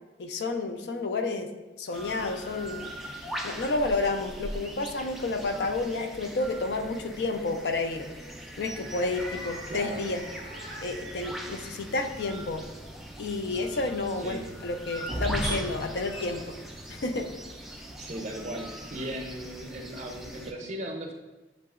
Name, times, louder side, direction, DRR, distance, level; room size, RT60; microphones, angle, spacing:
voice 1, 0.2-1.5 1.8-2.9 3.4-8.1 8.6-10.2 10.8-12.6 13.2-16.4 16.9-17.3, left 3 dB, 70° left, 6 dB, 0.4 m, -30 dB
sound 1, 1.9-20.5, right 1 dB, ahead, 0.3 m, -41 dB
sound 2, 8.5-17.2, equal, 85° left, 1.3 m, -41 dB
voice 2, 9.7-10.1 14.2-14.5 18.0-21.1, right 1 dB, 40° right, 2 dB, 0.6 m, -37 dB
7.2 x 2.8 x 2.4 m, 1.1 s
head